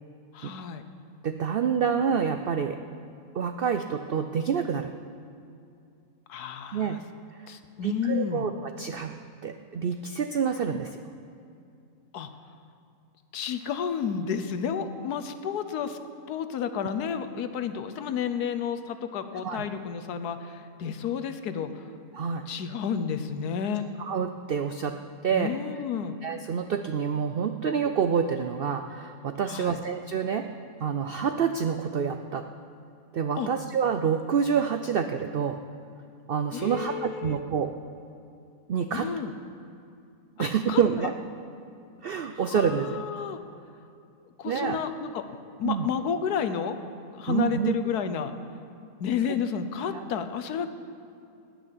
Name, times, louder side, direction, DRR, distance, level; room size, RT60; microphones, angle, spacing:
voice 1, 0.3-0.8 6.3-7.0 7.5-8.5 12.1-12.3 13.3-16.0 16.3-21.8 22.5-23.8 25.3-26.2 29.5-29.8 33.4-33.5 36.5-37.4 38.9-39.3 40.7-41.1 42.5-43.4 44.4-45.2 45.6-46.8 47.1-48.3 49.0-50.7, left 7 dB, 85° left, 9 dB, 1.4 m, -31 dB
voice 2, 1.2-2.8 3.3-4.9 6.7-7.0 7.4-7.5 7.8-9.2 9.4-11.0 19.4-19.7 22.1-22.5 24.0-25.0 25.2-25.5 26.2-30.5 30.8-32.5 33.1-35.6 36.3-37.7 38.7-39.1 40.4-41.1 42.0-43.1 44.4-44.8 45.6-45.9 47.3-47.8 49.9-50.0, right 7 dB, 80° right, 7 dB, 0.5 m, -27 dB
17.5 x 6.1 x 10.0 m, 2.5 s
omnidirectional pair, 1.6 m